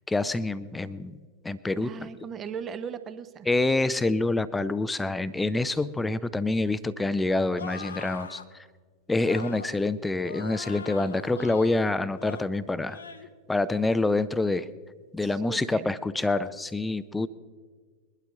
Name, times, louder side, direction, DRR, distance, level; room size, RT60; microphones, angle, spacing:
voice 1, 0.1-1.2 1.4-1.9 3.5-8.4 9.1-13.0 13.5-14.7 15.1-17.3, left 2 dB, 10° left, 16 dB, 0.5 m, -26 dB
voice 2, 1.8-3.5 15.2-16.0, right 7 dB, 25° right, 12 dB, 0.8 m, -38 dB
sound 1, 7.5-8.5 9.2-9.7 10.2-11.8 12.1-12.5 12.9-13.3 13.7-14.0, left 5 dB, 70° left, 0.8 m, -41 dB
22.0 x 11.5 x 3.5 m, 1.5 s
figure-of-eight pair, 90°, 0 cm